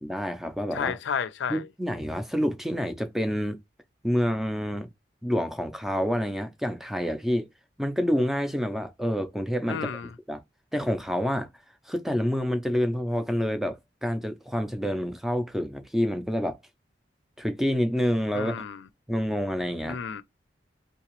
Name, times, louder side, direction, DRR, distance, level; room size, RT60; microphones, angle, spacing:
voice 1, 0.0-1.0 1.5-3.6 4.0-4.9 5.2-7.5 7.8-9.9 10.3-10.4 10.7-11.5 11.9-16.6 17.4-18.6 19.1-20.0, equal, ahead, 0.4 m, -28 dB
voice 2, 0.7-1.7 9.7-10.1 18.3-18.9 19.8-20.2, left 7 dB, 75° left, 0.4 m, -32 dB
3.4 x 2.9 x 3.0 m
head